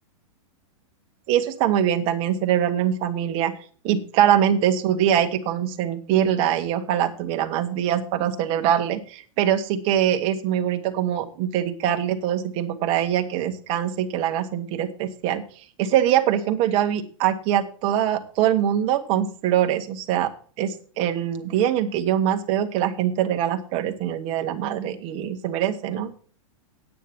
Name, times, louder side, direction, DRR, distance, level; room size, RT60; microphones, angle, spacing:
voice 1, 1.3-3.5 3.8-15.4 15.8-20.3 20.6-26.1, right 10 dB, 30° right, 6 dB, 1.3 m, -23 dB
9.2 x 8.5 x 6.1 m, 0.43 s
supercardioid pair, 160°, 18 cm